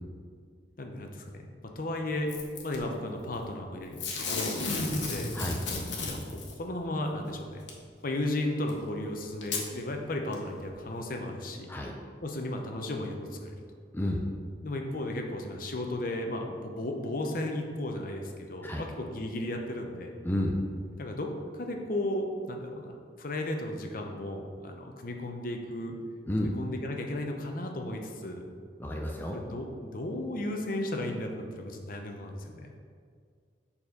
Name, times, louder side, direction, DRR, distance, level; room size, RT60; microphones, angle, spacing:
voice 1, 0.8-1.5 1.8-2.3 2.6-5.3 6.1-6.2 6.6-7.6 8.0-11.7 12.2-13.6 14.6-20.2 21.0-26.0 26.4-28.5 29.3-32.7, left 1 dB, 50° left, 3 dB, 0.8 m, -35 dB
Packing tape duct tape / Tearing, 2.3-2.8 4.0-6.5 7.7-7.8 8.7-8.8 9.4-9.7 10.3-10.4, left 3 dB, 85° left, 1.2 m, -33 dB
voice 2, 20.2-20.6 26.3-26.5 28.8-29.4, left 1 dB, 10° left, 0 dB, 0.5 m, -30 dB
7.1 x 4.3 x 5.2 m, 2.1 s
head